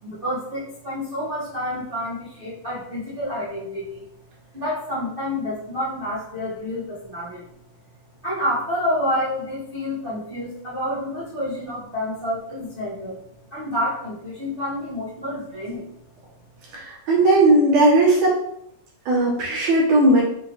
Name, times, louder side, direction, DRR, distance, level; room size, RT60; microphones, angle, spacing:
voice 1, 0.0-4.1 4.5-7.5 8.2-13.2 13.5-15.9, left 1 dB, 80° right, -12 dB, 0.4 m, -28 dB
voice 2, 16.7-18.4 19.1-20.2, right 2 dB, 65° right, -5 dB, 2.3 m, -17 dB
6.0 x 3.1 x 2.6 m, 0.75 s
omnidirectional pair, 3.8 m